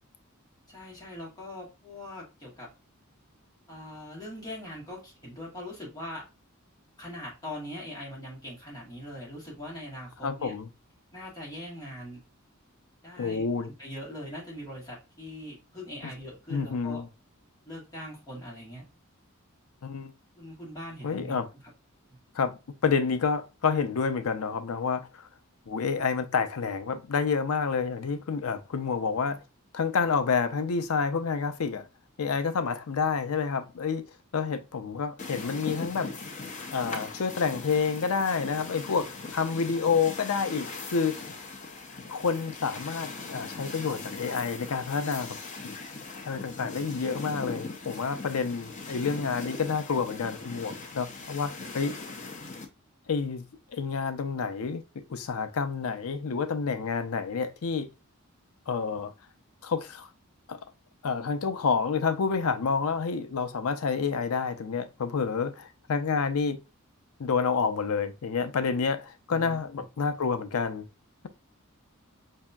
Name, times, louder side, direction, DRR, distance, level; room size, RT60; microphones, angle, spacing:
voice 1, 0.7-2.7 3.7-6.2 7.0-10.5 11.1-12.2 13.0-17.0 17.6-18.9 20.4-21.4 22.1-22.2 69.3-69.7, left 1 dB, 20° left, 1.7 m, -41 dB
voice 2, 10.2-10.7 13.2-13.7 16.5-17.1 19.8-20.1 21.0-21.5 22.3-22.5 22.8-25.3 25.7-29.4 29.7-31.9 32.2-34.0 34.3-36.1 36.7-41.3 42.1-45.4 45.6-45.7 46.2-51.9 53.1-53.5 53.7-54.8 55.1-57.9 58.7-59.1 59.6-60.1 60.5-60.6 61.0-66.6 67.2-70.9, left 5 dB, 85° left, 0.5 m, -29 dB
sound 1, 35.2-52.7, left 3 dB, 35° left, 0.7 m, -40 dB
5.1 x 2.7 x 2.2 m
head